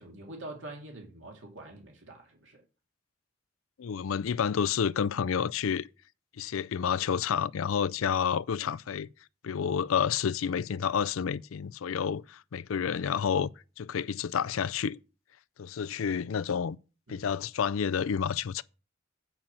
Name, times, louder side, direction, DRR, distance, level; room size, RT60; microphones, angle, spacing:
voice 1, 0.0-2.6 17.1-17.4, right 2 dB, 65° right, 2.5 m, -45 dB
voice 2, 3.8-5.9 6.4-9.1 9.4-13.5 13.8-15.0 15.6-16.8 17.1-18.6, left 7 dB, 85° left, 0.4 m, -29 dB
8.9 x 5.6 x 7.3 m
head